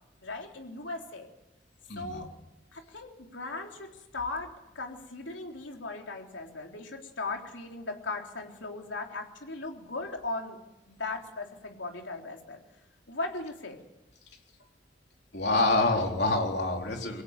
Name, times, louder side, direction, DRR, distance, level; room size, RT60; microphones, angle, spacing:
voice 1, 0.2-1.3 2.0-2.3 2.7-10.6 10.9-12.6 13.1-13.8, left 3 dB, 85° left, 2 dB, 3.6 m, -38 dB
voice 2, 1.9-2.2 15.3-17.2, left 2 dB, 60° left, 2 dB, 4.2 m, -26 dB
23.0 x 17.0 x 8.4 m, 1.0 s
head